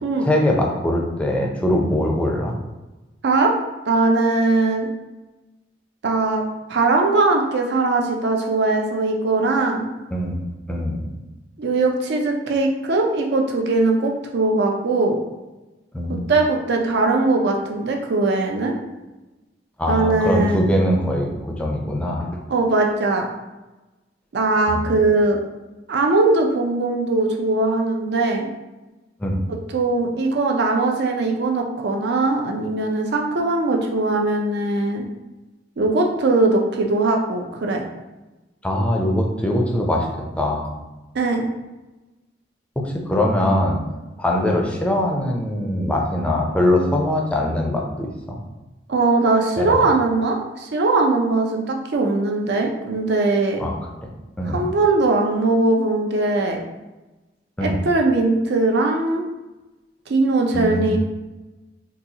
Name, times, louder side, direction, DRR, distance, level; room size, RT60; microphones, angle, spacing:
voice 1, 0.2-2.5 10.1-10.4 10.7-11.1 15.9-16.2 19.8-22.3 24.7-25.0 29.2-29.4 38.6-40.1 40.4-40.7 42.8-43.8 44.2-48.4 49.6-49.8 53.6-53.7 54.0-54.1 54.4-54.6 57.6-57.8 60.5-61.0, left 1 dB, 5° left, 0 dB, 0.4 m, -22 dB
voice 2, 3.2-3.5 3.9-4.9 6.0-6.4 6.7-9.9 11.6-15.2 16.3-18.7 19.9-20.6 22.5-23.3 24.3-25.4 25.9-28.5 29.7-35.0 35.8-37.8 41.1-41.5 48.9-53.6 54.5-56.6 57.6-59.3 60.1-61.0, right 3 dB, 65° right, 2 dB, 0.5 m, -20 dB
3.9 x 2.3 x 2.8 m, 1.1 s
head